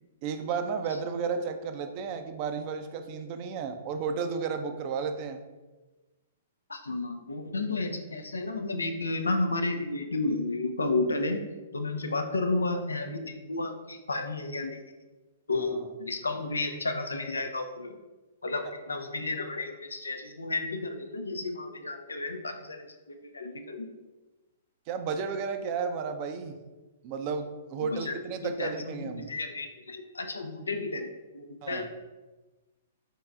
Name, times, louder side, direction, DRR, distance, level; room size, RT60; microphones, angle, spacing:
voice 1, 0.2-5.4 15.6-15.9 24.9-26.6 27.0-29.3 31.6-31.9, right 5 dB, 40° right, 7 dB, 0.5 m, -33 dB
voice 2, 6.7-11.4 11.7-14.8 15.5-18.0 18.4-24.0 27.8-28.2 28.4-31.9, left 2 dB, 80° left, 6 dB, 0.5 m, -32 dB
4.1 x 3.6 x 3.4 m, 1.2 s
figure-of-eight pair, 115°, 0 cm